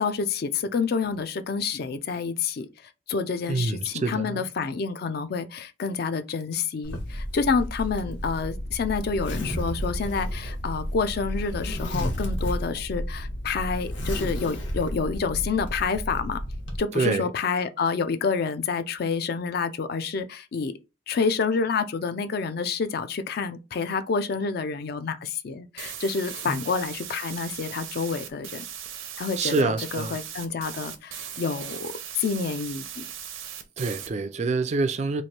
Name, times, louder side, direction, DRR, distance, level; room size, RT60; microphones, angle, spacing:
voice 1, 0.0-2.7 3.1-16.4 16.8-20.7 21.1-28.6 29.2-33.1, left 5 dB, 50° left, 0.4 m, -28 dB
voice 2, 3.5-4.4 16.9-17.3 26.5-26.6 29.4-30.2 33.8-35.2, right 3 dB, 35° right, 0.3 m, -26 dB
Zipper (clothing), 6.8-16.8, equal, 65° left, 1.1 m, -32 dB
sound 1, 25.8-34.1, right 9 dB, 80° right, 0.6 m, -39 dB
3.1 x 2.5 x 4.2 m
head